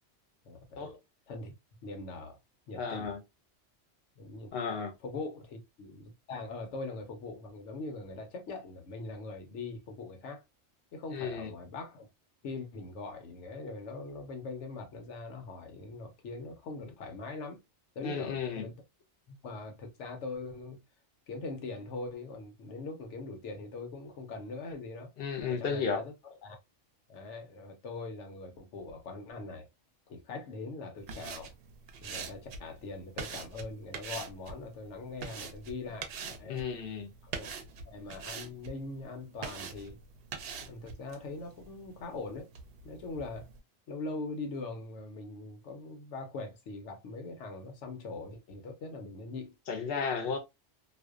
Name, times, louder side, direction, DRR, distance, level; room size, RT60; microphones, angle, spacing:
voice 1, 0.4-0.9 1.3-1.5 1.8-2.4 2.7-3.2 4.2-4.5 5.0-10.4 10.9-12.1 12.4-17.6 17.9-18.8 19.3-20.8 21.3-25.1 25.5-26.1 26.4-26.6 27.1-29.7 30.1-31.5 32.0-36.6 37.2-37.5 37.8-40.0 40.7-42.5 42.8-43.5 43.9-49.5, left 3 dB, 80° left, 1.0 m, -42 dB
voice 2, 2.7-3.2 4.5-4.9 11.1-11.5 18.0-18.7 25.2-26.0 36.5-37.1 49.7-50.4, left 5 dB, 60° left, 0.8 m, -33 dB
sound 1, 31.0-43.6, right 5 dB, 65° right, 0.7 m, -45 dB
2.5 x 2.1 x 2.3 m
omnidirectional pair, 1.2 m